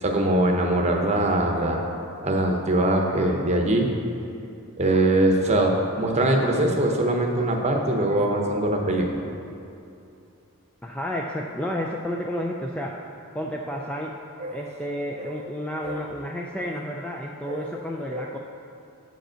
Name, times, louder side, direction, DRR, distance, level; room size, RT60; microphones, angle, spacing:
voice 1, 0.0-3.9 4.8-9.1 14.4-14.6 15.2-15.3 15.8-16.0 17.5-17.6 18.1-18.2, right 1 dB, 30° right, 2 dB, 0.8 m, -22 dB
voice 2, 10.8-13.0 13.3-14.1 14.5-18.4, equal, 5° left, -1 dB, 0.3 m, -31 dB
8.0 x 5.1 x 6.3 m, 2.7 s
head